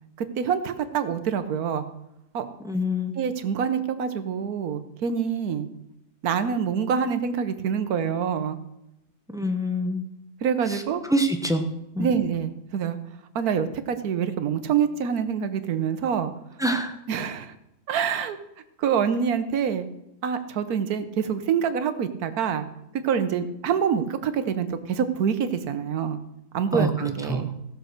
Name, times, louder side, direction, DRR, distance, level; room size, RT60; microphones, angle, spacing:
voice 1, 0.2-1.8 2.3-2.5 3.1-5.7 6.2-8.6 10.4-11.0 12.0-13.0 13.3-16.3 17.1-17.5 17.9-18.4 18.8-19.9 20.2-22.7 23.0-26.2 26.5-27.5, right 7 dB, 70° right, 10 dB, 1.4 m, -26 dB
voice 2, 2.6-3.2 9.3-10.0 11.1-11.6 11.9-12.1 16.6-16.9 26.7-26.9 27.3-27.4, equal, 5° right, 5 dB, 0.8 m, -25 dB
15.5 x 6.5 x 6.5 m, 0.86 s
omnidirectional pair, 1.7 m